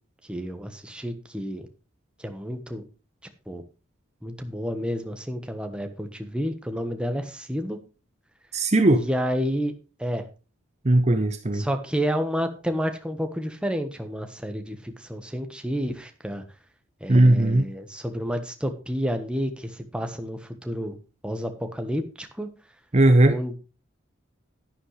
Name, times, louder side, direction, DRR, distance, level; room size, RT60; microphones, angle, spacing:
voice 1, 0.3-1.7 2.2-2.8 3.5-3.6 4.2-7.8 8.9-9.7 10.0-10.3 11.5-16.4 17.0-21.0 21.2-22.5 23.2-23.5, equal, 5° right, 1.3 m, -30 dB
voice 2, 8.5-9.0 10.8-11.7 17.1-17.7 22.9-23.4, right 1 dB, 35° right, 0.7 m, -18 dB
11.0 x 10.5 x 3.3 m
head